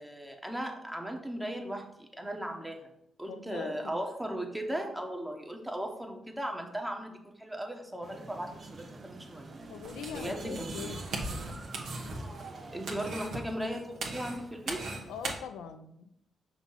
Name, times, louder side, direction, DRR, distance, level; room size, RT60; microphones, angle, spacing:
voice 1, 0.0-2.9 3.2-9.6 10.1-11.0 12.7-14.8, equal, 10° right, 3 dB, 1.1 m, -37 dB
voice 2, 3.3-4.0 9.7-11.0 15.1-16.1, left 7 dB, 90° left, 9 dB, 0.5 m, -42 dB
sound 1, 8.0-13.1, right 3 dB, 50° right, 0.9 m, -47 dB
sound 2, 9.8-15.3, right 2 dB, 75° right, 1.2 m, -39 dB
6.1 x 2.9 x 5.5 m, 0.77 s
cardioid pair, 65°, 0 cm